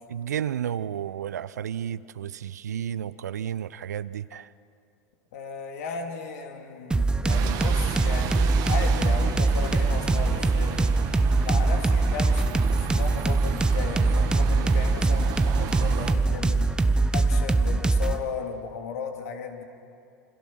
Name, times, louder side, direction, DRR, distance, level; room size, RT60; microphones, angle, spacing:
voice 1, 0.1-4.5, right 9 dB, 70° right, 18 dB, 0.6 m, -32 dB
voice 2, 5.3-10.9 11.4-16.7 17.1-19.6, left 6 dB, 60° left, 3 dB, 3.0 m, -36 dB
sound 1, 6.9-18.2, right 3 dB, 10° right, 0.9 m, -23 dB
Bus, 7.3-16.1, right 10 dB, 45° right, 1.9 m, -34 dB
28.5 x 26.5 x 6.2 m, 2.5 s
figure-of-eight pair, 85°, 9 cm